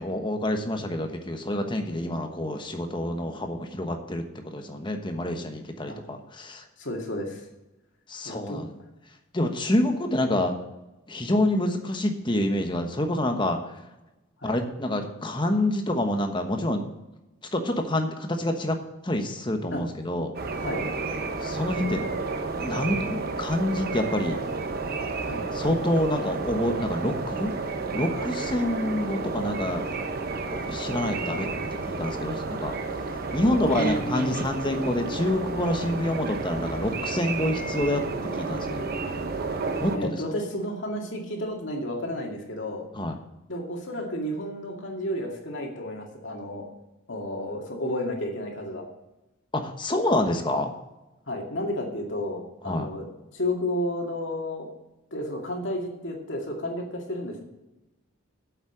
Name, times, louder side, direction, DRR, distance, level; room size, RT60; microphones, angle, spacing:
voice 1, 0.0-6.6 8.1-8.7 9.3-10.5 11.1-13.6 14.4-16.9 17.5-18.8 19.0-20.3 21.4-22.0 22.6-24.4 25.5-27.6 27.9-29.8 30.5-31.5 31.9-32.8 33.3-38.0 38.3-38.9 39.8-40.1 43.0-43.2 49.5-50.7 52.7-52.9, left 1 dB, 20° left, 5 dB, 1.1 m, -27 dB
voice 2, 6.8-7.5 8.2-8.6 14.4-14.5 19.7-19.8 20.5-20.9 25.2-25.4 31.3-31.5 33.6-34.4 39.9-42.8 43.5-46.6 47.1-48.8 51.3-53.1 53.3-54.7 55.1-57.4, left 1 dB, 60° left, 1 dB, 2.3 m, -32 dB
sound 1, 20.3-40.0, right 3 dB, 45° right, 1.0 m, -31 dB
8.6 x 7.3 x 7.3 m, 0.99 s
head